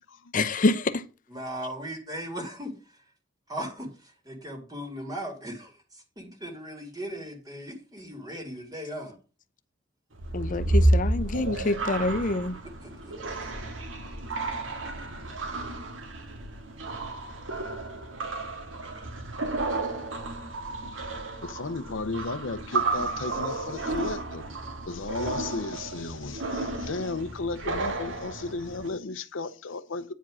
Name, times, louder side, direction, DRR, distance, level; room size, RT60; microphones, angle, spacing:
voice 1, 0.3-1.0 10.3-12.5, left 2 dB, 45° left, 0.7 m, -26 dB
voice 2, 1.3-2.7 3.5-3.9 4.3-5.7 6.2-9.2 12.8-13.1, equal, 20° right, 2.0 m, -37 dB
sound 1, 10.1-28.9, right 2 dB, 85° right, 1.7 m, -31 dB
voice 3, 21.3-24.4 24.9-30.1, left 3 dB, 85° left, 0.7 m, -34 dB
9.2 x 4.8 x 6.1 m
head